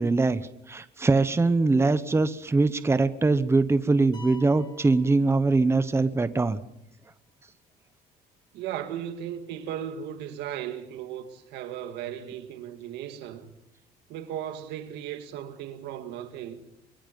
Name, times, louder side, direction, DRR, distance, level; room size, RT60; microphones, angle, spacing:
voice 1, 0.0-6.6, right 3 dB, 15° right, 1.0 m, -22 dB
sound 1, 4.1-6.0, left 4 dB, 25° left, 6.0 m, -49 dB
voice 2, 8.5-13.5 14.1-16.6, right 10 dB, 90° right, 2.1 m, -36 dB
24.5 x 22.5 x 5.4 m
cardioid pair, 110°, 17 cm